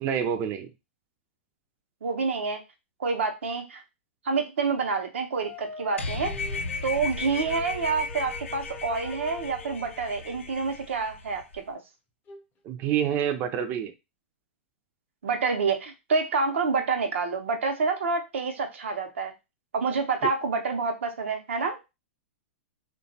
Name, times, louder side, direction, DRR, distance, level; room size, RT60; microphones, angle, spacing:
voice 1, 0.0-0.7 12.6-13.9, right 9 dB, 35° right, 7 dB, 0.5 m, -27 dB
voice 2, 2.0-2.6 3.0-3.8 4.2-6.3 6.8-11.8 15.2-19.3 19.7-21.8, right 4 dB, 80° right, 4 dB, 0.7 m, -28 dB
sound 1, 5.4-10.5 12.3-12.4, left 3 dB, 30° left, 0.6 m, -44 dB
sound 2, 6.0-11.6, left 3 dB, 90° left, 0.4 m, -36 dB
2.8 x 2.2 x 2.7 m, 0.24 s
hypercardioid pair, 115°, 7 cm